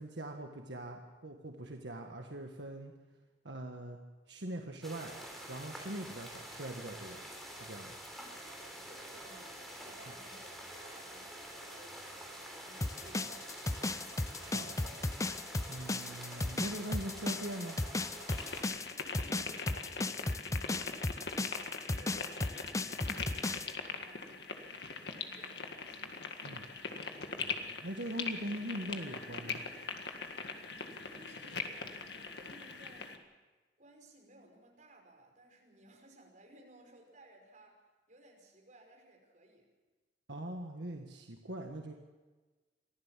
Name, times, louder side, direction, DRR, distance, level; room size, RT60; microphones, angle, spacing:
voice 1, 0.0-2.9 3.4-4.0 4.3-5.1 5.5-7.2 7.5-8.0 14.4-14.9 15.7-17.8 26.4-26.7 27.4-29.6 40.3-41.9, right 1 dB, 80° right, 3 dB, 1.6 m, -42 dB
sound 1, 4.8-18.6, right 1 dB, ahead, 3.8 m, -47 dB
voice 2, 8.9-13.9 18.9-20.9 21.2-24.8 25.2-26.1 30.9-33.2 33.8-39.7, right 1 dB, 45° right, 1 dB, 5.6 m, -59 dB
sound 2, 12.8-23.7, left 2 dB, 20° left, 0.6 m, -35 dB
sound 3, 18.3-33.2, left 4 dB, 65° left, 1.9 m, -42 dB
23.5 x 15.0 x 7.5 m, 1.3 s
head